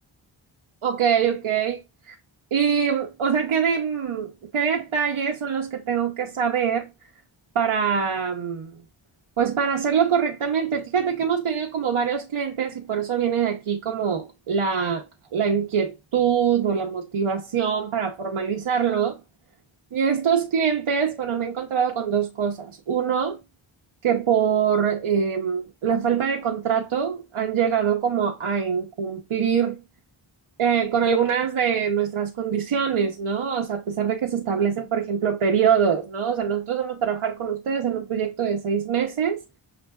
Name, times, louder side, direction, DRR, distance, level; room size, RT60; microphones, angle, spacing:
voice 1, 0.8-2.1 2.5-6.9 7.5-8.8 9.4-15.1 15.3-19.2 19.9-23.4 24.0-29.8 30.6-39.4, right 7 dB, 75° right, 0.9 m, -24 dB
6.6 x 2.5 x 2.2 m
wide cardioid pair, 90°, 48 cm